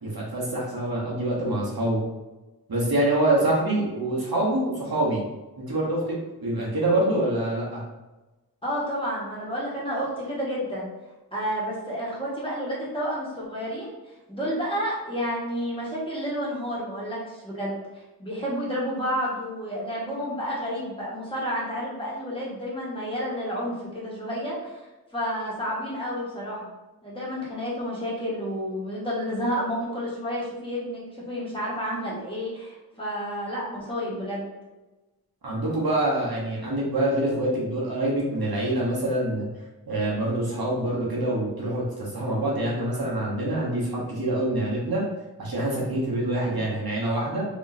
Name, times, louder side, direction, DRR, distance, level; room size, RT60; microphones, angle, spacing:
voice 1, 0.0-2.0 2.7-5.2 5.6-7.8 35.4-39.5 39.9-45.0 45.4-47.4, right 1 dB, 70° right, -5 dB, 1.2 m, -25 dB
voice 2, 8.6-10.9 11.3-14.0 14.3-24.8 25.1-26.7 27.0-34.5, equal, 15° left, -7 dB, 1.4 m, -30 dB
3.6 x 3.1 x 2.6 m, 1.1 s
wide cardioid pair, 60°, 38 cm